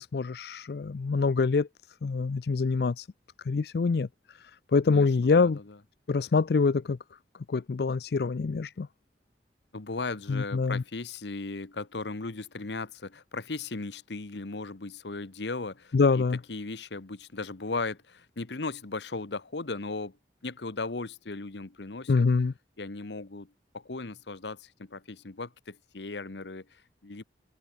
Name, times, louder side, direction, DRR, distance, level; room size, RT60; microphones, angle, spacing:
voice 1, 0.0-1.7 2.0-3.1 3.5-4.1 4.7-5.6 6.1-7.0 7.5-8.9 10.3-10.8 15.9-16.4 22.1-22.5, left 4 dB, 65° left, 0.4 m, -25 dB
voice 2, 4.9-5.8 9.7-16.2 16.5-20.2 20.4-22.3 22.8-27.2, left 3 dB, 80° left, 1.1 m, -37 dB
head